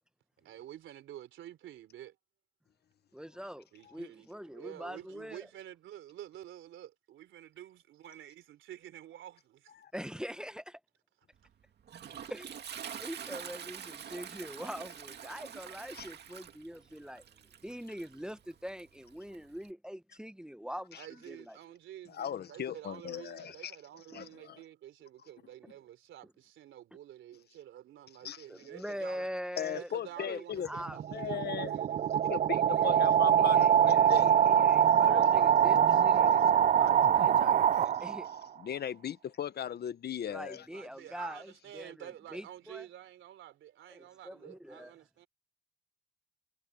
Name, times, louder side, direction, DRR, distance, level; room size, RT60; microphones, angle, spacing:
voice 1, 0.4-2.2 3.7-9.7 12.0-12.3 13.2-13.4 21.0-29.3 29.7-32.2 32.5-32.9 40.7-45.3, right 12 dB, 80° right, 3.6 m, -49 dB
voice 2, 3.1-5.4 9.9-10.8 12.3-12.5 13.0-17.2 17.6-21.0 21.3-21.6 24.1-24.2 28.5-29.9 30.2-31.0 32.7-33.0 33.4-38.3 40.3-42.9 43.9-44.9, equal, 5° right, 1.1 m, -43 dB
Toilet flush, 11.4-19.7, right 8 dB, 55° right, 2.2 m, -46 dB
voice 3, 22.1-23.7 24.1-24.6 28.2-28.4 29.6-30.7 31.1-31.7 32.3-35.3 38.6-40.7, left 9 dB, 55° left, 1.2 m, -38 dB
sound 1, 30.7-38.4, right 9 dB, 40° right, 0.4 m, -24 dB
cardioid pair, 90°, 20 cm